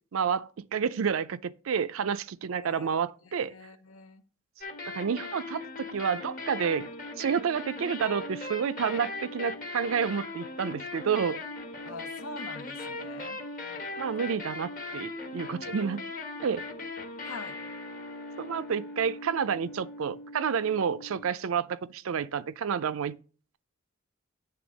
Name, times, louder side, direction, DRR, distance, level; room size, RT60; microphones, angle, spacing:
voice 1, 0.1-3.5 4.9-6.9 7.2-11.4 14.0-16.0 16.4-16.7 18.4-23.1, right 7 dB, 75° right, 0.4 m, -30 dB
voice 2, 2.6-2.9 3.2-4.2 11.8-13.4 17.2-17.6, left 3 dB, 85° left, 0.9 m, -44 dB
sound 1, 4.6-21.5, left 2 dB, 40° left, 1.2 m, -39 dB
8.7 x 3.5 x 6.2 m
head